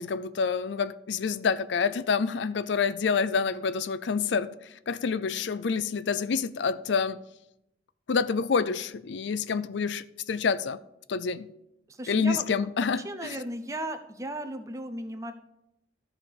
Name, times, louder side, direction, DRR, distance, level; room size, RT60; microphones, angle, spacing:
voice 1, 0.0-4.5 4.9-7.2 8.1-10.8 11.1-11.5 12.1-13.4, left 5 dB, 85° left, 0.4 m, -27 dB
voice 2, 11.9-12.4 13.0-15.3, right 1 dB, 15° right, 0.7 m, -36 dB
13.0 x 5.0 x 5.2 m
head